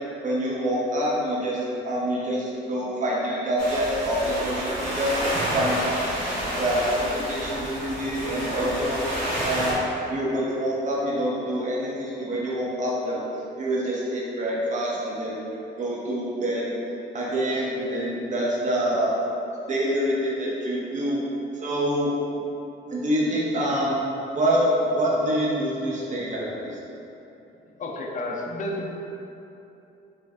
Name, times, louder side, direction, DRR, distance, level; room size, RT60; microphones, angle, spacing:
voice 1, 0.2-5.2 5.5-6.2 6.6-9.0 9.4-9.8 10.1-13.2 13.6-15.4 15.8-16.7 17.1-19.2 19.7-21.2 21.5-22.1 22.9-24.0 24.3-26.8, equal, 40° right, -5 dB, 0.7 m, -26 dB
sound 1, 3.6-9.7, right 1 dB, 75° right, 1.5 m, -29 dB
voice 2, 27.8-28.9, left 1 dB, 40° left, -1 dB, 0.5 m, -31 dB
3.2 x 3.1 x 2.4 m, 2.9 s
cardioid pair, 90°, 20 cm